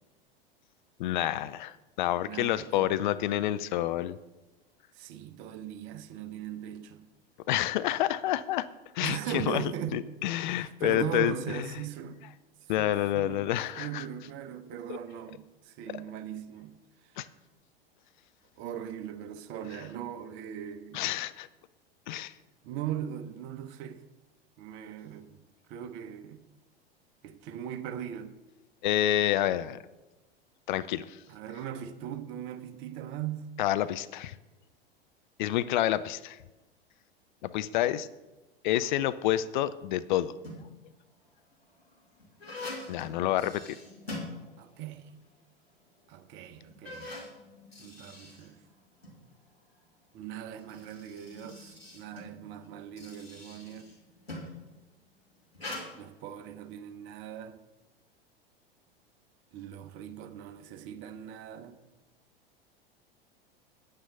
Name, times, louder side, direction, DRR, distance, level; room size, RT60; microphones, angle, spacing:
voice 1, 1.0-4.2 7.5-8.7 8.9-9.6 9.9-11.7 12.7-14.0 14.9-15.0 15.9-16.0 17.2-17.3 20.9-21.5 22.1-22.3 28.8-29.8 30.7-31.2 33.6-34.4 35.4-36.4 37.4-38.1 38.6-40.3 42.9-43.8, left 13 dB, 50° left, 0.5 m, -28 dB
voice 2, 2.2-3.0 4.9-7.1 9.0-10.0 10.5-12.2 12.8-13.5 13.8-16.8 17.0-17.1 18.6-21.0 22.6-24.0 24.6-25.4 25.7-26.4 27.2-28.3 31.3-33.6 44.6-45.1 46.1-47.1 47.8-48.6 50.1-53.9 56.0-57.6 59.5-61.8, right 10 dB, 40° right, 0.9 m, -39 dB
sound 1, 40.4-40.8 41.5-44.9 45.3-45.4 46.1-46.2 46.7-49.2 50.4-54.6 55.5-55.8, left 2 dB, 85° left, 2.7 m, -44 dB
9.5 x 8.9 x 5.4 m
figure-of-eight pair, 90°, 30 cm